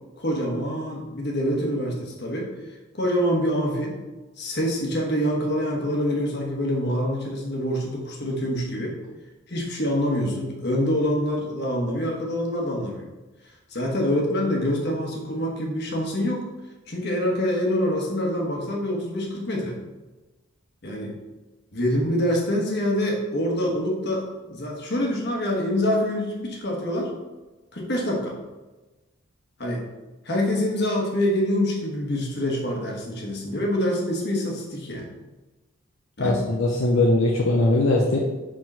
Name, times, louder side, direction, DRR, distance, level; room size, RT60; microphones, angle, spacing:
voice 1, 0.2-2.5 2.9-4.0 4.4-9.0 9.5-13.1 13.7-16.4 16.9-19.8 20.8-21.2 21.7-27.1 27.7-28.4 29.6-29.9 30.2-35.1 36.2-36.4, equal, 55° left, -1 dB, 1.4 m, -25 dB
voice 2, 36.2-38.2, left 2 dB, 75° left, -2 dB, 0.7 m, -20 dB
5.1 x 3.7 x 5.5 m, 1.1 s
head